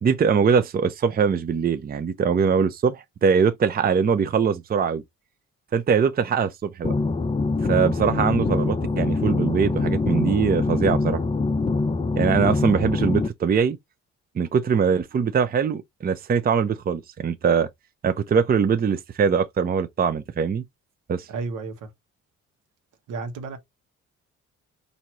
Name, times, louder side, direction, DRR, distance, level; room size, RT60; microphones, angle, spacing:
voice 1, 0.0-5.0 5.7-6.9 7.6-11.2 12.2-13.8 14.4-17.7 18.0-20.6 21.1-21.3, right 6 dB, 30° right, 0.6 m, -22 dB
sound 1, 6.8-13.3, left 3 dB, 20° left, 0.5 m, -24 dB
voice 2, 21.3-21.9 23.1-23.6, right 4 dB, 85° right, 1.2 m, -32 dB
4.4 x 2.8 x 2.9 m
cardioid pair, 90°, 30 cm